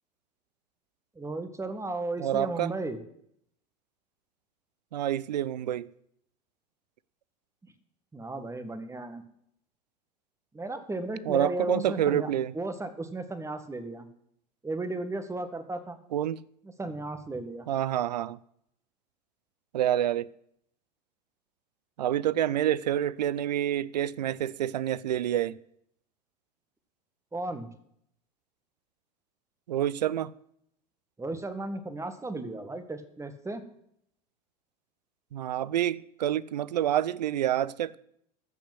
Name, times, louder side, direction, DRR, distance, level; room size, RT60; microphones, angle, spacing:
voice 1, 1.2-3.0 7.6-7.7 8.1-9.2 10.5-12.3 12.5-14.1 14.6-16.0 16.8-17.7 27.3-27.7 31.2-33.6, right 2 dB, 15° right, 1.8 m, -35 dB
voice 2, 2.2-2.7 4.9-5.9 11.2-12.5 16.1-16.4 17.7-18.4 19.7-20.3 22.0-25.6 29.7-30.3 35.3-38.0, right 11 dB, 85° right, 0.5 m, -28 dB
13.5 x 7.1 x 7.9 m
hypercardioid pair, 80°, 21 cm